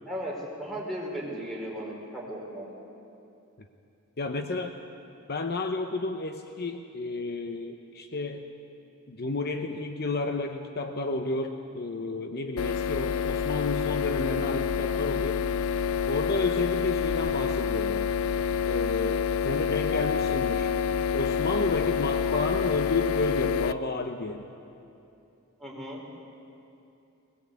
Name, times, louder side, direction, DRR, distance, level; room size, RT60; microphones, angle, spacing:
voice 1, 0.0-2.6 25.6-26.0, equal, ahead, -3 dB, 4.9 m, -36 dB
voice 2, 4.2-4.7 5.3-8.4 9.1-15.4 16.1-18.1 18.6-20.7 21.1-24.4, left 3 dB, 50° left, 5 dB, 0.9 m, -31 dB
sound 1, 12.6-23.7, left 7 dB, 80° left, 0.5 m, -28 dB
Keyboard (musical), 19.9-22.2, left 6 dB, 65° left, 2.4 m, -37 dB
21.0 x 19.5 x 8.4 m, 2.7 s
head